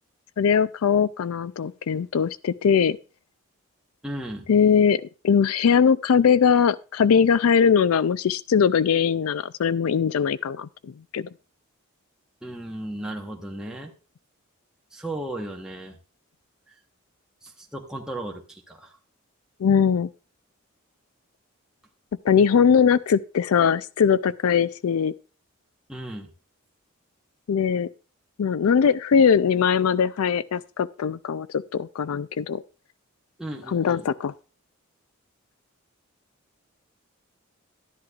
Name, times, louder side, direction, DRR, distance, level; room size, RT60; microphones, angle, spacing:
voice 1, 0.4-3.0 4.5-11.3 19.6-20.1 22.2-25.1 27.5-27.9 28.4-32.6 33.7-34.3, left 7 dB, 90° left, 0.4 m, -21 dB
voice 2, 4.0-4.5 12.4-13.9 14.9-16.0 16.7-16.8 17.4-18.9 25.9-26.3 33.4-34.1, right 1 dB, 5° right, 1.0 m, -35 dB
12.0 x 10.5 x 2.4 m
head